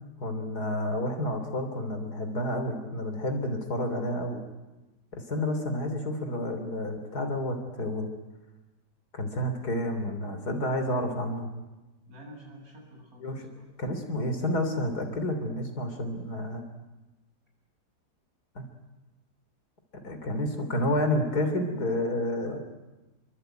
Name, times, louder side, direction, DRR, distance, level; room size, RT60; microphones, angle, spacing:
voice 1, 0.2-4.4 5.3-8.1 9.1-11.5 13.2-13.4 13.8-16.6 18.6-18.7 20.0-22.6, left 1 dB, 65° left, 7 dB, 3.9 m, -30 dB
voice 2, 12.1-13.6, equal, 55° right, 1 dB, 7.9 m, -49 dB
28.5 x 23.0 x 9.1 m, 1.1 s
omnidirectional pair, 1.8 m